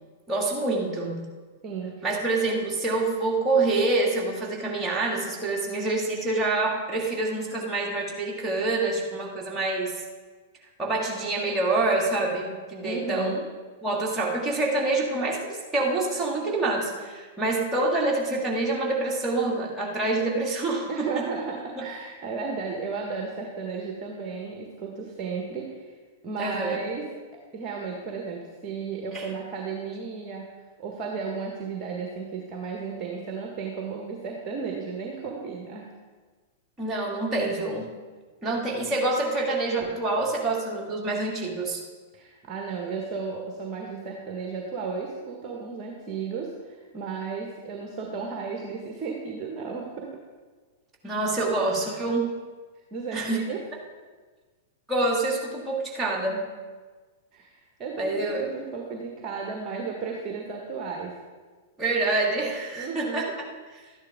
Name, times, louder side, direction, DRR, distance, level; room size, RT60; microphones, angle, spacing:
voice 1, 0.3-1.2 2.0-9.9 10.8-13.4 13.8-21.2 21.8-21.9 26.4-26.8 29.1-29.2 36.8-37.9 38.4-41.8 51.0-52.4 53.1-53.4 54.9-56.5 58.0-58.5 61.8-63.3, right 2 dB, 15° right, -3 dB, 2.3 m, -26 dB
voice 2, 1.6-2.0 12.8-13.4 20.9-25.9 26.2-27.0 27.5-30.5 30.8-35.9 42.1-50.1 52.9-53.6 57.3-61.1 62.7-63.3, right 5 dB, 30° right, 1 dB, 1.5 m, -34 dB
12.5 x 10.5 x 3.7 m, 1.4 s
figure-of-eight pair, 100°, 0 cm